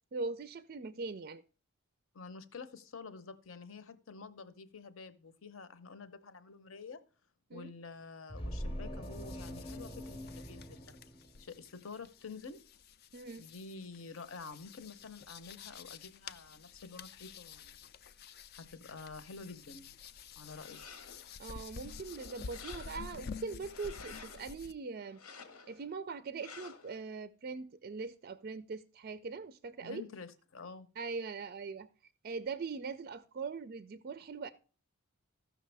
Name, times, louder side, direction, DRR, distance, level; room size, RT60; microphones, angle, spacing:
voice 1, 0.1-1.4 7.5-7.7 13.1-13.4 21.4-25.2 25.7-30.0 31.0-31.9 32.2-34.5, right 4 dB, 45° right, 0.4 m, -41 dB
voice 2, 2.1-7.0 7.5-11.0 11.4-12.6 13.4-17.8 18.6-20.0 20.4-20.8 29.8-30.9, left 4 dB, 65° left, 0.8 m, -49 dB
sound 1, 8.3-11.8, equal, 25° left, 0.7 m, -43 dB
sound 2, 9.0-24.7, left 5 dB, 45° left, 0.4 m, -50 dB
sound 3, 20.4-21.3 21.8-23.2 23.6-24.5 25.1-25.9 26.4-27.0, left 5 dB, 90° left, 1.1 m, -52 dB
14.5 x 6.0 x 3.3 m
head